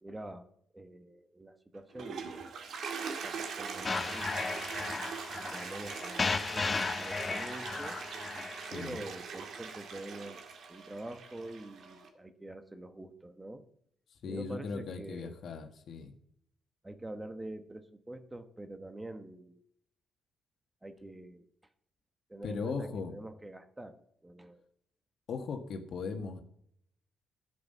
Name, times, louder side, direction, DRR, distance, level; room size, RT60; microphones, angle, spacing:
voice 1, 0.0-2.4 3.2-4.3 5.4-8.0 8.7-10.4 10.7-13.6 14.2-15.3 16.8-19.6 20.8-21.5 22.3-24.6, right 1 dB, 15° right, 10 dB, 1.0 m, -45 dB
Toilet flush, 1.8-12.1, right 5 dB, 65° right, 1.8 m, -42 dB
sound 1, 3.8-8.9, left 4 dB, 30° left, 0.6 m, -35 dB
voice 2, 8.6-9.0 14.2-16.1 22.4-23.1 25.3-26.4, left 5 dB, 60° left, 6 dB, 1.6 m, -38 dB
10.5 x 8.3 x 5.5 m, 0.69 s
cardioid pair, 90°, 0 cm